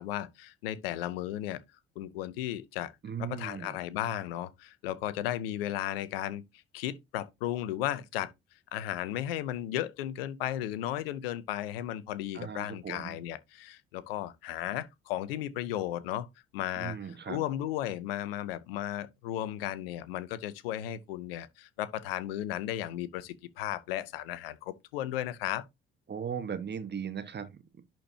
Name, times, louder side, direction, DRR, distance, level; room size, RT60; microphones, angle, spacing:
voice 1, 0.0-1.6 2.0-2.9 3.2-6.4 6.7-8.3 8.7-16.3 16.5-25.6, left 12 dB, 80° left, 0.7 m, -35 dB
voice 2, 3.0-3.8 12.3-13.1 16.8-17.4 26.1-27.8, right 7 dB, 35° right, 1.5 m, -38 dB
11.0 x 4.4 x 2.8 m
hypercardioid pair, 50°, 29 cm